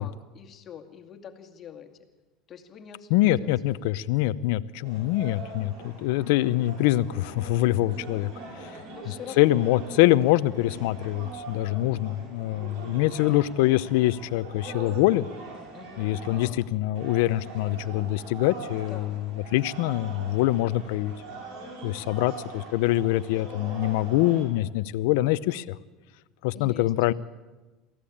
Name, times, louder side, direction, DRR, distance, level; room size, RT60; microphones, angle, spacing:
voice 1, 0.0-1.9 2.5-3.9 8.6-9.6 11.7-12.0 15.7-16.3 18.9-19.2 26.5-26.8, left 8 dB, 40° left, 4 dB, 2.3 m, -46 dB
voice 2, 3.1-8.3 8.6-8.8 9.1-15.3 16.0-21.1 21.8-25.8 26.4-27.1, left 16 dB, 80° left, 16 dB, 0.7 m, -24 dB
sound 1, 4.8-16.5 16.9-24.4, right 3 dB, 70° right, 6.7 m, -42 dB
23.5 x 15.5 x 8.7 m, 1.2 s
supercardioid pair, 120°, 0 cm